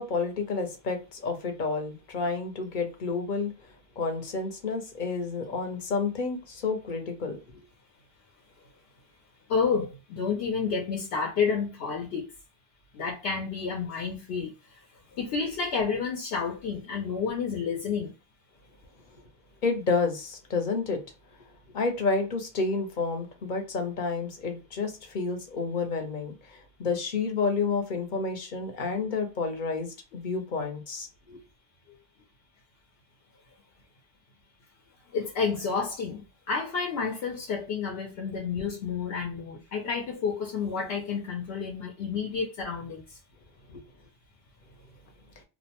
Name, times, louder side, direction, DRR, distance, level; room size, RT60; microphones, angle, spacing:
voice 1, 0.0-3.5 4.0-7.4 19.6-21.0 21.7-31.4 43.7-43.8, left 4 dB, 55° left, 0.8 m, -30 dB
voice 2, 9.5-12.3 12.9-14.5 15.1-18.1 35.1-43.0, left 5 dB, 85° left, 0.9 m, -30 dB
2.5 x 2.1 x 2.8 m
omnidirectional pair, 1.0 m